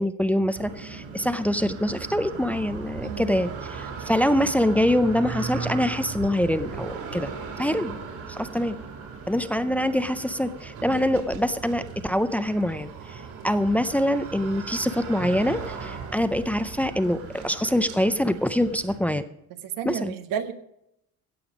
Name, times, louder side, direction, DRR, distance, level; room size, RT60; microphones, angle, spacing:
voice 1, 0.0-7.3 7.6-7.9 8.3-8.8 9.3-19.2 19.9-20.1, left 1 dB, 5° left, 11 dB, 0.5 m, -25 dB
sound 1, 0.5-19.0, right 5 dB, 70° right, 4.7 m, -37 dB
voice 2, 3.0-3.3 19.6-20.5, right 8 dB, 90° right, 8 dB, 1.6 m, -31 dB
16.5 x 7.8 x 5.0 m, 0.78 s
cardioid pair, 160°, 32 cm